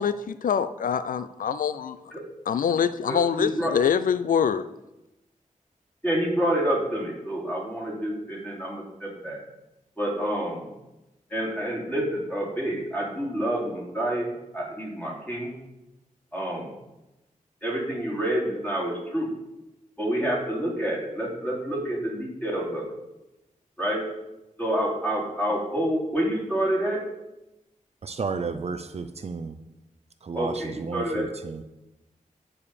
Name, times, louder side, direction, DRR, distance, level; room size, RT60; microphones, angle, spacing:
voice 1, 0.0-2.0 2.5-4.7, left 7 dB, 80° left, 0.4 m, -25 dB
voice 2, 3.1-3.7 6.0-9.4 10.0-10.7 11.3-15.5 16.3-16.7 17.6-19.3 20.0-22.8 23.8-24.0 24.6-27.0 30.3-31.2, right 1 dB, 10° left, 3.3 m, -28 dB
voice 3, 28.0-29.5 30.3-30.5 30.8-31.6, right 4 dB, 50° right, 0.6 m, -32 dB
9.8 x 4.8 x 6.8 m
wide cardioid pair, 100°, 14 cm